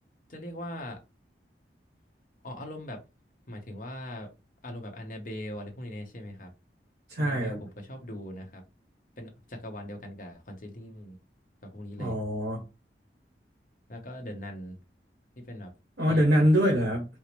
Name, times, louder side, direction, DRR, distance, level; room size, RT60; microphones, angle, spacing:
voice 1, 0.3-1.0 2.4-3.0 3.5-4.3 4.6-6.5 7.2-8.6 9.2-11.2 11.6-12.2 13.9-14.8 15.4-15.7 16.1-16.5, left 1 dB, 50° left, 0.9 m, -40 dB
voice 2, 7.1-7.6 12.0-12.6 16.0-17.0, equal, 85° right, 1.1 m, -24 dB
4.7 x 2.0 x 3.0 m
head